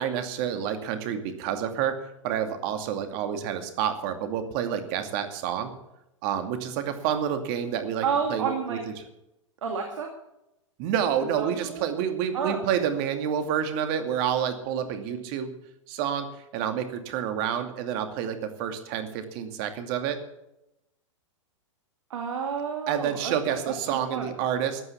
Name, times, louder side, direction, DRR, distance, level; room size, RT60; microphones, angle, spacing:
voice 1, 0.0-1.9 2.2-5.7 6.2-8.8 10.8-15.5 15.9-16.3 16.5-20.2 22.9-24.8, right 9 dB, 45° right, 7 dB, 2.5 m, -28 dB
voice 2, 8.0-8.8 9.6-10.1 11.3-11.8 12.3-12.8 15.0-15.1 22.1-23.6 23.9-24.3, right 6 dB, 70° right, 3 dB, 2.5 m, -30 dB
15.0 x 9.6 x 7.2 m, 0.87 s
hypercardioid pair, 110°, 16 cm